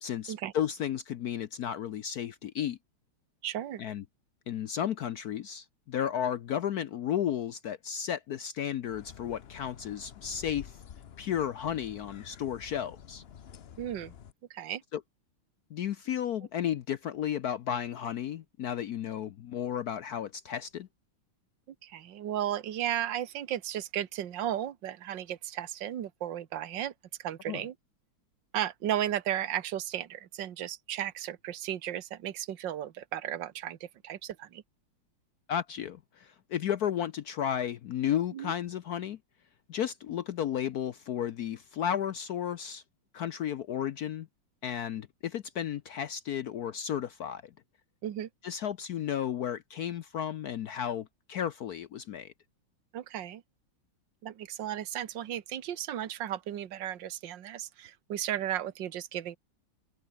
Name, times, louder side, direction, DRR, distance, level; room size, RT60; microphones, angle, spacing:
voice 1, 0.0-2.8 3.8-4.0 4.5-10.8 11.2-13.2 14.9-15.0 15.7-20.9 27.5-27.6 35.5-39.2 39.7-42.8 43.1-44.3 44.6-47.4 48.4-52.3, left 9 dB, 65° left, 1.0 m, -33 dB
voice 2, 3.4-3.8 13.8-14.1 14.5-14.8 21.7-26.9 27.2-27.7 28.5-34.6 38.3-38.5 48.0-48.3 52.9-53.4 54.2-59.4, right 11 dB, 65° right, 1.9 m, -35 dB
sound 1, 8.9-14.3, left 8 dB, 90° left, 0.5 m, -49 dB
omnidirectional pair, 2.2 m